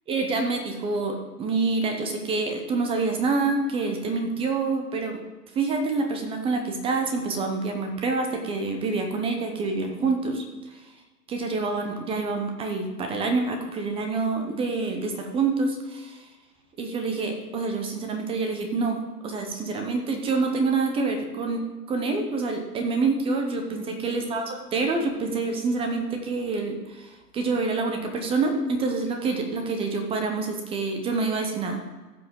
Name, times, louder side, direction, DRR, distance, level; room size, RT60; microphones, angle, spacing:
voice 1, 0.1-5.2 5.5-10.4 10.7-10.8 11.3-16.3 16.8-19.0 19.2-31.8, right 3 dB, 10° right, 4 dB, 0.7 m, -27 dB
15.5 x 5.6 x 3.7 m, 1.2 s
hypercardioid pair, 125°, 48 cm